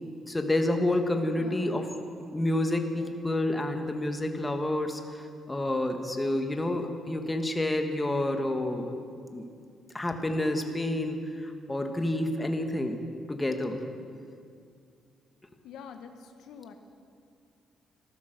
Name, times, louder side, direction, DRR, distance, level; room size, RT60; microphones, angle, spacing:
voice 1, 0.3-1.9 2.2-9.0 9.3-9.5 9.9-13.0 13.3-13.8, left 1 dB, 15° left, 5 dB, 1.5 m, -29 dB
voice 2, 1.3-1.9 15.6-16.7, left 6 dB, 80° left, 6 dB, 1.1 m, -46 dB
14.5 x 12.5 x 6.6 m, 2.3 s
cardioid pair, 90°, 0 cm